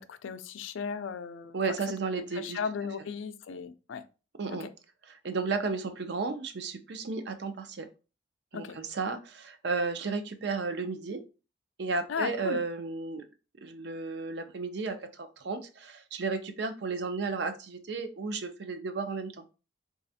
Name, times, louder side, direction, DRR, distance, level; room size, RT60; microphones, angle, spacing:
voice 1, 0.0-1.6 2.3-4.1 4.5-4.7 8.5-8.8 12.1-12.6, left 5 dB, 80° left, 0.4 m, -36 dB
voice 2, 1.5-2.6 4.4-4.7 5.1-7.9 8.5-11.2 11.8-13.2 13.6-19.4, right 4 dB, 60° right, 0.5 m, -33 dB
4.1 x 2.4 x 2.7 m
head